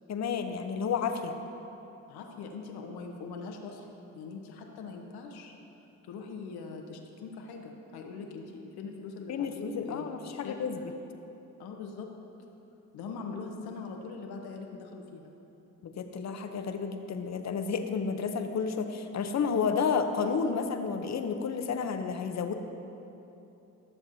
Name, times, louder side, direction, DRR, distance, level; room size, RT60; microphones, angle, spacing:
voice 1, 0.1-1.3 9.3-10.8 15.8-22.5, left 5 dB, 45° left, 6 dB, 0.8 m, -31 dB
voice 2, 2.1-5.5 6.0-10.6 11.6-12.1 12.9-15.3, left 4 dB, 75° left, 3 dB, 1.0 m, -42 dB
13.0 x 7.0 x 2.7 m, 3.0 s
hypercardioid pair, 55°, 39 cm